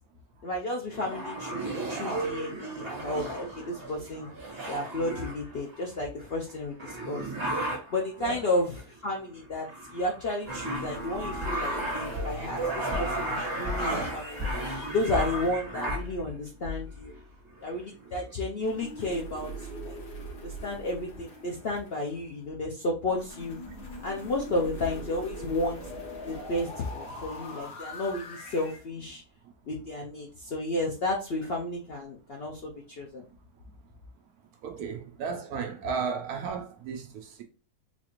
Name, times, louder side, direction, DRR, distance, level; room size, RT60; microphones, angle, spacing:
voice 1, 0.4-4.3 4.7-7.3 7.9-17.1 17.6-20.0 20.4-23.6 24.0-25.9 26.3-29.2 29.7-33.3, left 1 dB, 70° left, 0.6 m, -32 dB
sound 1, 0.9-5.9 6.5-6.6 6.8-8.1 8.8-9.1 9.5-16.3 17.1-17.2 17.5-18.2, right 2 dB, 40° right, 1.4 m, -34 dB
sound 2, 10.4-15.5 18.6-22.4 23.1-28.8, equal, 85° left, 1.6 m, -42 dB
sound 3, 11.4-17.2, left 3 dB, ahead, 0.9 m, -38 dB
voice 2, 34.6-37.4, right 5 dB, 75° right, 1.0 m, -34 dB
4.0 x 2.4 x 2.9 m
omnidirectional pair, 1.7 m